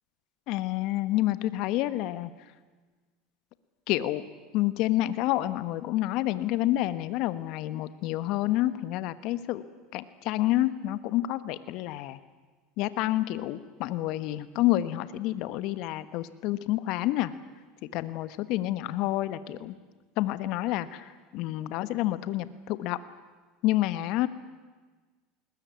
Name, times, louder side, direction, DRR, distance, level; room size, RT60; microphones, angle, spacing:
voice 1, 0.5-2.3 3.9-4.2 4.5-9.6 9.9-12.2 12.8-17.3 17.9-19.7 20.2-23.0 23.6-24.3, left 15 dB, 60° left, 13 dB, 1.2 m, -28 dB
20.5 x 20.5 x 9.5 m, 1.4 s
hypercardioid pair, 90°, 0 cm